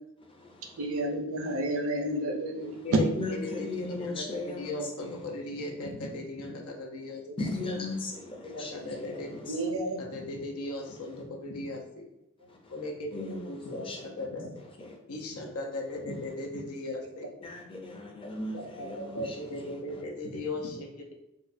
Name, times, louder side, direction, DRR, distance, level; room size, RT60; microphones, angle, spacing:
voice 1, 0.2-0.8 1.4-1.6 2.6-2.9 3.2-5.2 7.4-9.6 12.5-12.7 13.1-14.3 14.8-15.0 17.4-19.8, left 2 dB, 25° left, 0.5 m, -38 dB
voice 2, 0.8-2.8 9.5-10.0, right 1 dB, 70° right, 0.6 m, -31 dB
voice 3, 2.8-7.2 8.4-9.4 10.0-12.1 12.7-14.5 15.1-17.3 18.5-21.1, left 2 dB, 85° left, 0.7 m, -37 dB
4.4 x 2.2 x 2.6 m
head